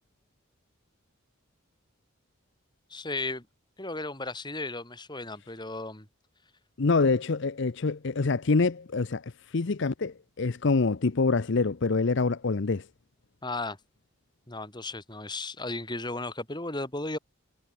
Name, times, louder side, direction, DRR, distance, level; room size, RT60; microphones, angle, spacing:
voice 1, 2.9-3.5 3.8-6.1 13.4-13.8 14.5-17.2, left 2 dB, 20° left, 4.7 m, -35 dB
voice 2, 6.8-12.9, left 4 dB, 60° left, 0.7 m, -26 dB
head